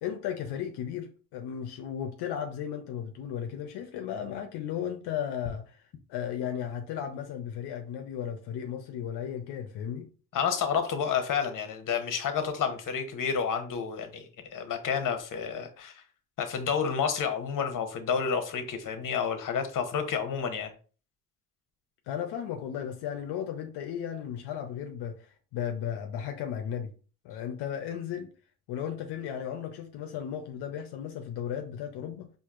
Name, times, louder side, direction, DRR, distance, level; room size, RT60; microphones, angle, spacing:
voice 1, 0.0-5.8 6.1-10.1 22.1-26.9 27.2-28.3 28.7-32.3, left 9 dB, 90° left, 0.6 m, -35 dB
voice 2, 10.3-16.0 16.4-20.7, left 6 dB, 55° left, 0.9 m, -30 dB
4.4 x 2.5 x 2.5 m
cardioid pair, 80°, 39 cm